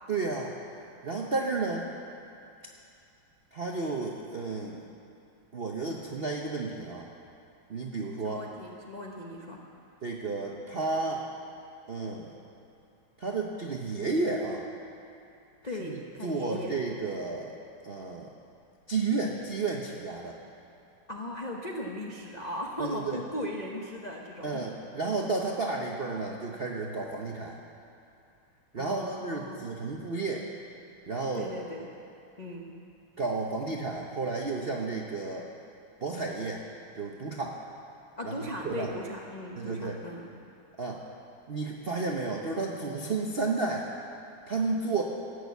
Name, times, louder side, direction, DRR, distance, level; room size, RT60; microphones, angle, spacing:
voice 1, 0.1-0.6 1.0-1.9 3.5-4.8 5.5-7.1 7.7-8.4 10.0-11.3 11.9-12.3 13.2-14.7 15.8-16.0 16.2-17.5 17.8-18.3 18.9-20.4 22.8-23.2 24.4-27.6 28.7-30.4 31.1-31.5 33.2-35.5 36.0-36.6 37.0-37.6 38.2-38.4 38.6-38.9 39.6-40.0 40.8-41.0 41.5-43.9 44.5-45.0, right 3 dB, 60° right, 0 dB, 0.6 m, -32 dB
voice 2, 8.2-9.6 15.6-16.7 21.1-24.7 28.7-30.0 31.3-31.9 32.4-32.7 38.2-40.3, left 1 dB, 50° left, -2 dB, 0.5 m, -38 dB
17.5 x 6.8 x 8.1 m, 2.6 s
omnidirectional pair, 2.3 m